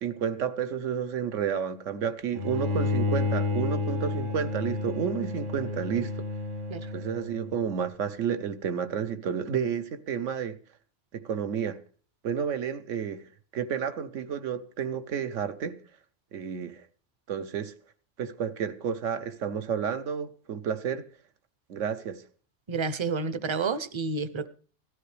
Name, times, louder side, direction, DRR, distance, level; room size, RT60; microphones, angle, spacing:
voice 1, 0.0-6.3 6.9-10.6 11.1-11.8 12.2-13.2 13.5-15.8 16.3-16.8 17.3-17.7 18.2-21.0 21.7-22.2, right 7 dB, 90° right, 1.2 m, -31 dB
Bowed string instrument, 2.3-7.6, left 3 dB, 75° right, 2.3 m, -30 dB
voice 2, 22.7-24.5, right 4 dB, 35° right, 0.5 m, -30 dB
17.5 x 13.0 x 3.3 m
omnidirectional pair, 1.2 m